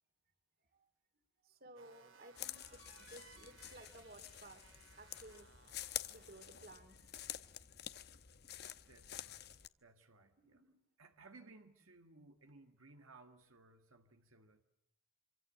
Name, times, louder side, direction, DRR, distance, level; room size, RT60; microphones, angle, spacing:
voice 1, 1.4-4.7 5.0-5.6 6.1-7.1 8.4-8.5 10.4-10.8, right 1 dB, 45° right, 3.2 m, -58 dB
sound 1, 1.8-6.8, right 4 dB, 70° right, 3.0 m, -63 dB
sound 2, 2.4-9.7, left 11 dB, 50° left, 1.0 m, -49 dB
voice 2, 8.9-9.5 9.8-10.6 11.0-14.6, right 3 dB, 85° right, 1.9 m, -61 dB
26.5 x 25.0 x 7.6 m
head